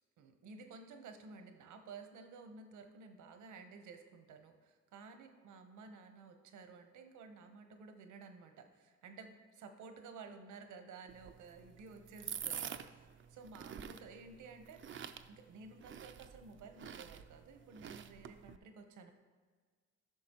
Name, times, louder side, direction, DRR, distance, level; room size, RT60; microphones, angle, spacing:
voice 1, 0.0-19.1, right 4 dB, 75° right, 6 dB, 1.0 m, -54 dB
sound 1, 11.1-18.6, right 8 dB, 40° right, 0.4 m, -48 dB
12.5 x 6.0 x 3.0 m, 1.5 s
cardioid pair, 90°, 30 cm